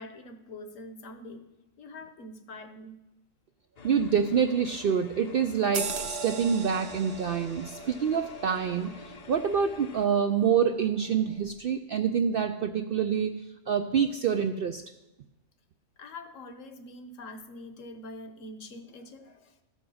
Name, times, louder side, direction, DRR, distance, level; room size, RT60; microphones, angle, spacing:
voice 1, 0.0-1.5 1.8-3.0 16.0-19.6, left 1 dB, 65° left, 8 dB, 1.2 m, -44 dB
sound 1, 3.8-10.1, left 5 dB, 45° left, 0.5 m, -48 dB
voice 2, 3.8-8.9 9.3-13.4 13.7-14.8, right 7 dB, 70° right, 8 dB, 0.5 m, -26 dB
sound 2, 5.7-10.7 11.1-11.3, right 5 dB, 55° right, 1.0 m, -39 dB
14.0 x 5.5 x 6.3 m, 0.99 s
omnidirectional pair, 1.5 m